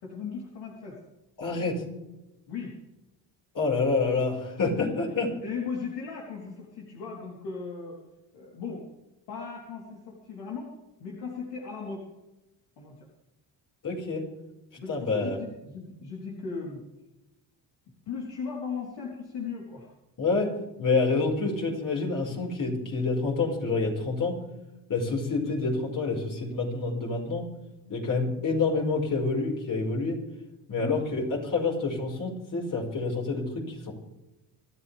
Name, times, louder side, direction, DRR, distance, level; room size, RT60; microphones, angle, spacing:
voice 1, 0.0-1.0 2.5-2.8 5.4-8.0 8.3-8.9 9.3-10.7 11.0-12.1 12.8-13.1 14.8-16.8 18.1-19.9 28.1-28.3 30.8-31.0, left 5 dB, 80° left, -3 dB, 3.9 m, -37 dB
voice 2, 1.4-1.8 3.5-5.3 13.8-14.2 14.9-15.4 20.2-20.5 20.8-24.4 24.9-27.4 27.9-30.2 30.7-33.9, left 3 dB, 50° left, -1 dB, 5.3 m, -27 dB
25.0 x 13.0 x 3.5 m, 0.97 s
cardioid pair, 85°, 41 cm